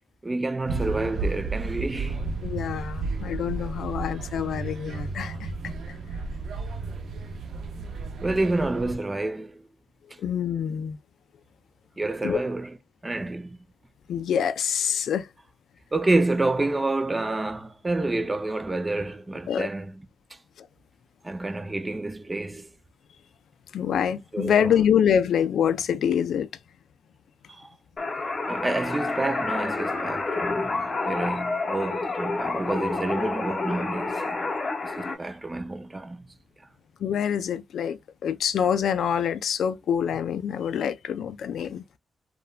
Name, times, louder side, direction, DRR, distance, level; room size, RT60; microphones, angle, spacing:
voice 1, 0.2-2.5 8.2-9.6 12.0-12.7 13.0-13.6 15.9-20.0 21.2-22.7 24.3-24.8 27.5-27.7 28.5-34.5 34.8-36.2, right 2 dB, 20° right, 0.4 m, -28 dB
sound 1, 0.7-8.9, right 3 dB, 80° right, 0.5 m, -33 dB
voice 2, 2.4-5.5 10.2-11.0 12.2-12.4 14.1-15.3 19.5-19.7 20.6-20.7 23.7-26.5 37.0-41.8, left 8 dB, 85° left, 0.3 m, -25 dB
sound 2, 28.0-35.2, left 3 dB, 35° left, 0.7 m, -29 dB
3.2 x 2.2 x 2.3 m
cardioid pair, 115°, 0 cm